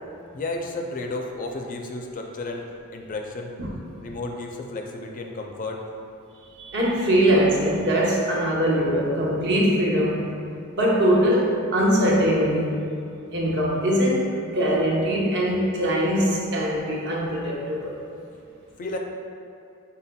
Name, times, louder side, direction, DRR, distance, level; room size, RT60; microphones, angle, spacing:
voice 1, 0.3-2.7 2.9-3.5 4.0-5.8 18.8-19.0, left 2 dB, 40° left, 2 dB, 0.4 m, -32 dB
voice 2, 6.6-10.2 10.8-12.8 13.3-18.0, equal, 55° right, -3 dB, 0.8 m, -22 dB
5.6 x 4.1 x 2.2 m, 2.5 s
head